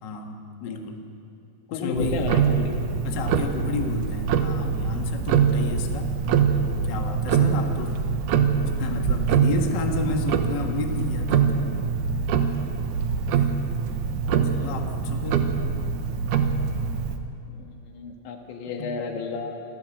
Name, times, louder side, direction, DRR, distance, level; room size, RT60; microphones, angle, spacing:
voice 1, 0.0-1.0 1.7-2.2 3.0-6.1 6.8-8.0 8.8-11.4 13.3-13.4 14.4-15.5 18.8-18.9, left 4 dB, 70° left, 3 dB, 1.0 m, -31 dB
voice 2, 1.7-2.7 5.4-5.6 11.7-12.0 13.3-13.6 17.5-19.6, left 4 dB, 85° left, 3 dB, 4.2 m, -33 dB
Tick-tock, 1.9-17.2, right 6 dB, 75° right, 1.9 m, -24 dB
27.0 x 16.0 x 7.8 m, 2.6 s
omnidirectional pair, 5.0 m